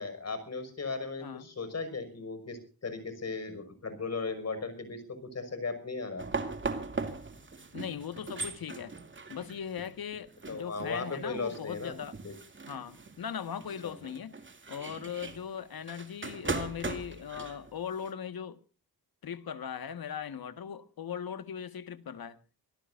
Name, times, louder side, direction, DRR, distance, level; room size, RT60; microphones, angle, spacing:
voice 1, 0.0-6.3 10.5-11.9 12.2-12.4 13.8-13.9, left 4 dB, 45° left, 6.0 m, -37 dB
sound 1, 6.2-18.1, right 4 dB, 30° right, 2.7 m, -39 dB
voice 2, 7.7-8.9 9.3-12.2 12.7-14.4 14.7-18.6 19.2-22.4, left 8 dB, 70° left, 1.8 m, -39 dB
25.5 x 17.5 x 2.6 m
wide cardioid pair, 110°, 37 cm